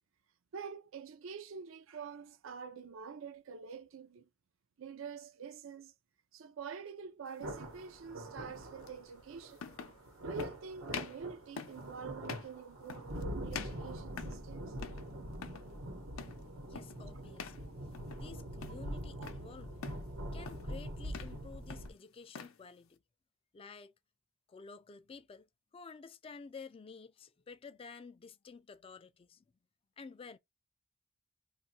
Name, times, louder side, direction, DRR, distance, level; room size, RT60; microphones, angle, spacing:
voice 1, 0.5-4.3 4.8-5.9 6.3-9.7 10.2-14.7 19.2-19.3, right 6 dB, 70° right, 0.5 m, -46 dB
sound 1, 7.4-7.6 8.9-9.0 9.6-10.0 10.4-10.6 10.9-11.2 11.6-11.8 12.2-12.5 12.9-13.2 13.5-14.5 14.8-15.1 15.3-15.7 16.2-16.4 16.8-17.0 17.4-17.6 17.9-18.3 18.6-19.4 19.8-20.1 20.4-20.7 21.0-21.4 21.7-22.6, left 6 dB, 80° left, 0.5 m, -45 dB
sound 2, 7.4-21.9, right 1 dB, 90° right, 1.0 m, -44 dB
voice 2, 16.6-17.7 18.1-19.9 20.3-23.0 23.5-23.9 24.5-25.5 25.7-29.4 30.0-30.4, left 5 dB, 25° left, 0.3 m, -51 dB
2.6 x 2.3 x 4.1 m
head